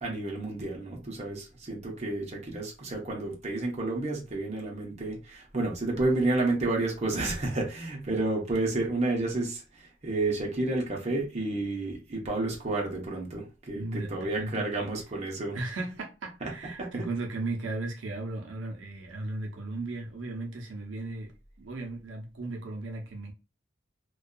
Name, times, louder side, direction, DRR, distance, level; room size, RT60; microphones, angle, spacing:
voice 1, 0.0-15.6 16.4-17.1, right 2 dB, 35° right, 0.8 m, -31 dB
voice 2, 13.7-14.9 15.5-21.3 21.6-23.3, right 2 dB, 75° right, 0.6 m, -36 dB
2.6 x 2.3 x 2.2 m
head